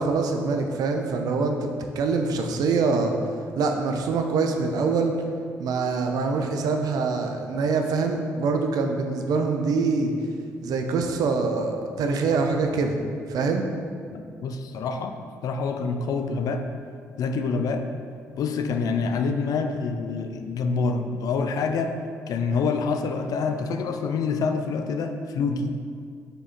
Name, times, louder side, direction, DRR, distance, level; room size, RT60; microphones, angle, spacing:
voice 1, 0.0-3.1 3.6-5.2 5.6-10.1 10.6-13.0 13.3-13.7, right 4 dB, 55° right, 4 dB, 0.6 m, -24 dB
voice 2, 14.1-15.2 15.4-16.7 17.2-17.9 18.4-22.0 22.3-25.7, left 4 dB, 50° left, 6 dB, 0.5 m, -26 dB
6.7 x 4.9 x 3.8 m, 2.2 s
figure-of-eight pair, 45°, 8 cm